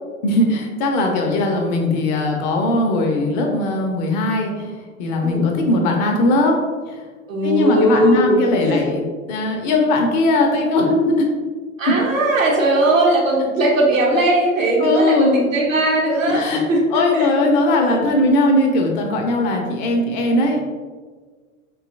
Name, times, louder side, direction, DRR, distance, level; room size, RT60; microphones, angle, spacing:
voice 1, 0.2-4.7 5.0-6.6 6.9-7.0 7.4-11.3 14.8-15.4 16.3-16.6 16.9-20.6, left 2 dB, 35° left, 2 dB, 0.5 m, -19 dB
voice 2, 7.3-8.9 11.8-16.9 17.1-17.3, right 1 dB, 75° right, -2 dB, 0.9 m, -18 dB
3.0 x 2.7 x 2.5 m, 1.4 s
figure-of-eight pair, 85°, 40 cm